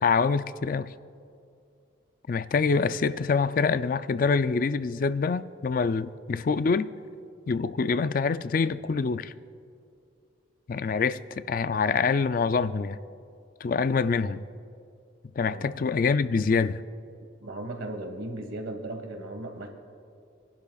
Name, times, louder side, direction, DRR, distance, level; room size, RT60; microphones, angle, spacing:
voice 1, 0.0-0.9 2.3-6.9 7.5-9.3 10.7-13.0 13.6-14.4 15.4-16.8, left 5 dB, 45° left, 14 dB, 0.3 m, -25 dB
voice 2, 17.4-19.7, right 1 dB, 85° right, 4 dB, 1.6 m, -36 dB
27.0 x 11.5 x 2.4 m, 2.4 s
head